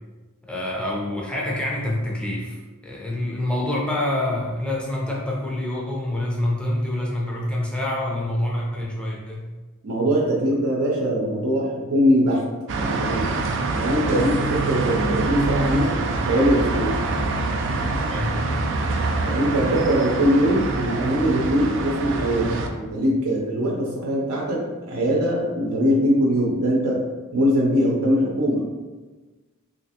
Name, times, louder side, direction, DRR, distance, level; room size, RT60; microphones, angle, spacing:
voice 1, 0.4-9.5 18.0-18.4, left 1 dB, 5° left, -4 dB, 0.6 m, -26 dB
voice 2, 9.8-12.4 12.8-13.3 13.7-17.0 19.2-27.0 27.3-28.6, equal, 85° right, -4 dB, 0.7 m, -22 dB
sound 1, 12.7-22.7, right 3 dB, 60° right, 0.4 m, -25 dB
3.2 x 2.9 x 2.9 m, 1.2 s
head